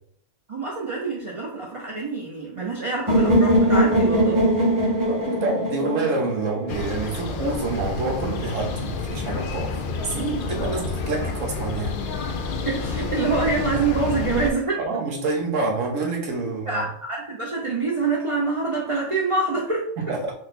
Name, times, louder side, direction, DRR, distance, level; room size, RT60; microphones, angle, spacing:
voice 1, 0.5-4.5 12.7-15.0 16.4-19.9, right 3 dB, 40° right, -3 dB, 0.5 m, -26 dB
sound 1, 3.1-7.0, equal, 20° right, 0.8 m, -21 dB
voice 2, 5.1-12.0 14.8-16.8 20.0-20.3, right 3 dB, 75° right, 0 dB, 1.2 m, -27 dB
sound 2, 6.7-14.5, left 4 dB, 65° left, 0.5 m, -29 dB
4.0 x 2.1 x 4.0 m, 0.67 s
omnidirectional pair, 1.4 m